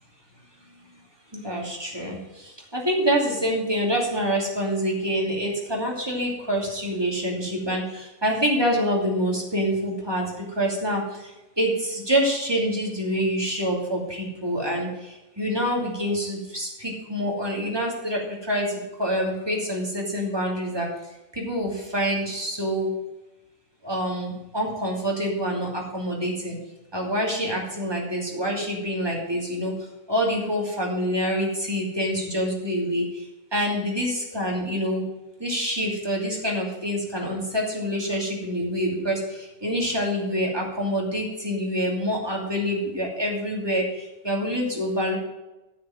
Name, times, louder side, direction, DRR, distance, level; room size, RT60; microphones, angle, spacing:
voice 1, 1.3-11.0 11.6-14.9 15.4-20.9 21.4-22.9 23.8-26.6 26.9-29.7 30.1-33.0 33.5-35.0 35.4-43.9 44.2-45.1, equal, 15° right, -2 dB, 2.8 m, -26 dB
9.8 x 7.3 x 7.8 m, 0.99 s
omnidirectional pair, 1.5 m